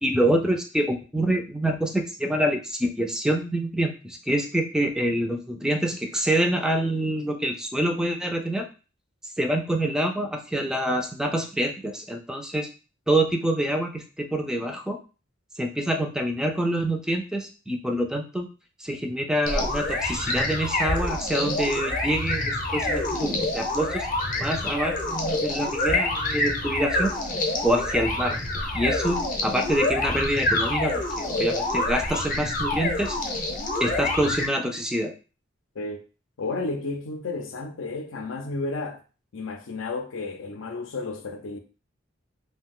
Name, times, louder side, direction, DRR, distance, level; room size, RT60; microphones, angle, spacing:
voice 1, 0.0-8.7 9.4-12.7 13.1-15.0 15.6-18.5 18.8-24.1 24.4-27.1 27.6-28.4 28.7-33.2 33.8-35.1, right 1 dB, 5° right, 0.3 m, -26 dB
sound 1, 19.5-34.5, left 2 dB, 45° left, 0.6 m, -27 dB
voice 2, 36.4-39.0 39.3-41.6, left 3 dB, 85° left, 0.5 m, -32 dB
2.6 x 2.2 x 3.6 m
head